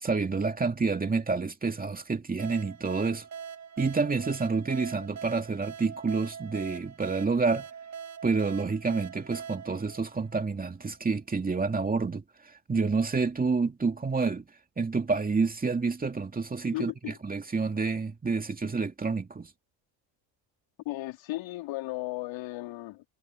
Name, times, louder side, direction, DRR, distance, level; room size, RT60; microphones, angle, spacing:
voice 1, 0.0-3.3 3.8-7.7 8.2-12.2 12.7-14.5 14.8-19.5, right 4 dB, 15° right, 2.4 m, -28 dB
sound 1, 2.4-10.8, right 7 dB, 35° right, 1.5 m, -42 dB
voice 2, 16.7-17.2 20.8-23.0, left 18 dB, 65° left, 4.3 m, -35 dB
supercardioid pair, 110°, 49 cm